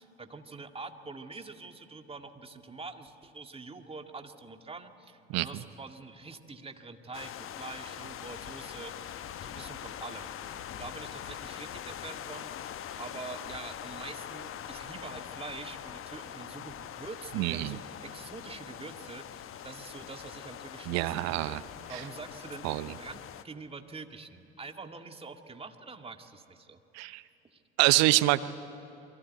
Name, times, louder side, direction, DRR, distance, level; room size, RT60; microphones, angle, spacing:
voice 1, 0.0-21.6 21.9-26.8 27.5-27.6, right 4 dB, 20° right, 5 dB, 2.0 m, -45 dB
sound 1, 7.1-23.4, left 10 dB, 45° left, 1.1 m, -43 dB
voice 2, 17.3-17.8 20.9-21.6 22.6-22.9 26.9-27.2 27.8-28.4, right 19 dB, 55° right, 15 dB, 0.8 m, -26 dB
28.0 x 22.5 x 9.2 m, 2.8 s
figure-of-eight pair, 55°, 31 cm